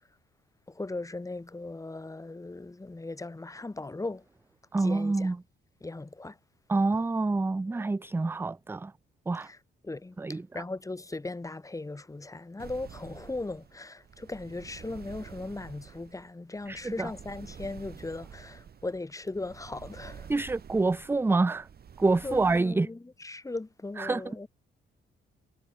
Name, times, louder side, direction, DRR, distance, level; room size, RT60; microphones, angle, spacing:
voice 1, 0.7-4.2 4.8-5.3 5.8-6.4 9.4-9.6 9.8-20.3 22.2-24.5, left 2 dB, 15° left, 2.6 m, -38 dB
voice 2, 4.7-5.4 6.7-8.9 9.3-9.5 10.2-10.6 16.7-17.1 20.3-21.7 22.0-22.9 24.0-24.5, right 3 dB, 10° right, 0.5 m, -27 dB
sound 1, 12.6-22.6, right 7 dB, 50° right, 4.4 m, -49 dB
cardioid pair, 90°, 20 cm